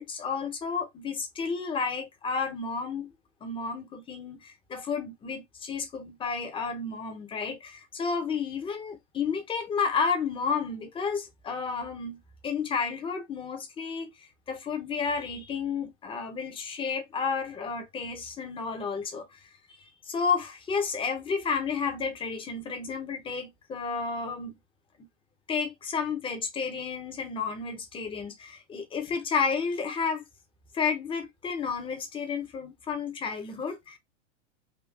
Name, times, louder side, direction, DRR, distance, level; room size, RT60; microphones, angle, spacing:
voice 1, 0.0-3.1 3.4-14.1 14.5-19.4 19.7-19.8 20.0-24.6 25.5-30.2 30.7-34.0, left 5 dB, 15° left, 0.8 m, -31 dB
3.7 x 2.3 x 3.3 m
supercardioid pair, 140°, 37 cm